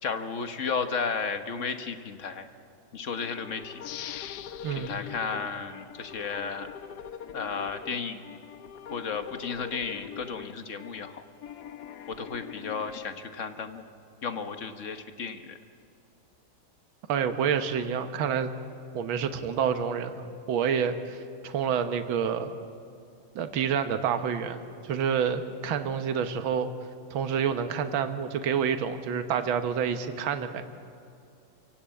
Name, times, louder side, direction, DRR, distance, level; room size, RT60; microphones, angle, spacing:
voice 1, 0.0-2.5 2.9-3.8 4.7-6.8 7.3-8.4 8.9-11.2 12.1-13.8 14.2-15.6, left 5 dB, 45° left, 8 dB, 1.3 m, -33 dB
sound 1, 3.2-13.0, left 8 dB, 60° left, 1.3 m, -43 dB
sound 2, 3.8-6.5 7.0-7.1, left 11 dB, 75° left, 1.5 m, -44 dB
voice 2, 4.6-5.0 17.1-18.5 18.9-22.5 23.4-26.7 27.1-30.6, right 7 dB, 75° right, 8 dB, 1.9 m, -28 dB
27.5 x 17.0 x 8.6 m, 2.5 s
omnidirectional pair, 2.3 m